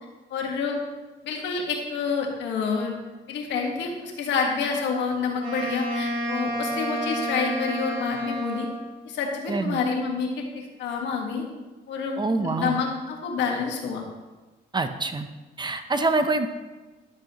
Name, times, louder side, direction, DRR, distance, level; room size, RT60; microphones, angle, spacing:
voice 1, 0.3-0.8 1.2-2.9 3.3-8.7 9.1-11.4 11.9-14.0, left 5 dB, 80° left, 1 dB, 1.7 m, -28 dB
Wind instrument woodwind instrument, 5.4-8.9, equal, 55° right, 3.4 m, -30 dB
voice 2, 9.5-9.8 12.2-12.8 14.7-15.3 15.6-16.5, right 3 dB, 25° right, 8 dB, 0.7 m, -25 dB
11.5 x 7.8 x 3.1 m, 1.2 s
cardioid pair, 90°, 18 cm